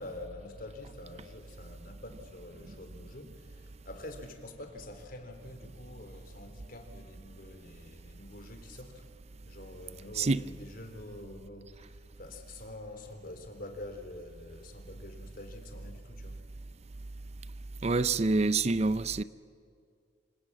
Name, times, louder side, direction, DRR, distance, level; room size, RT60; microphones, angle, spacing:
voice 1, 0.0-9.1 9.5-16.4, left 1 dB, 55° left, 3.7 m, -46 dB
voice 2, 17.8-19.2, right 3 dB, 40° right, 0.6 m, -26 dB
27.5 x 26.0 x 7.5 m
head